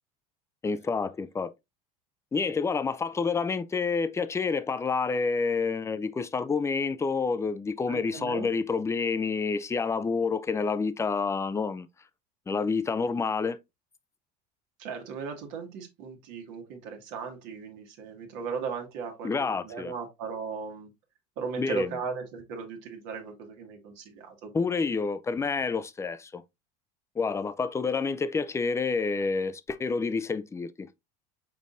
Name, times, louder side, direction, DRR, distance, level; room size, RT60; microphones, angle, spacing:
voice 1, 0.6-1.5 2.3-11.9 12.5-13.6 19.2-19.9 21.6-22.0 24.5-26.4 27.2-30.9, left 4 dB, 15° left, 0.4 m, -28 dB
voice 2, 7.9-8.5 14.8-20.9 21.4-24.5, right 5 dB, 65° right, 1.5 m, -37 dB
5.3 x 4.0 x 2.5 m
hypercardioid pair, 85°, 21 cm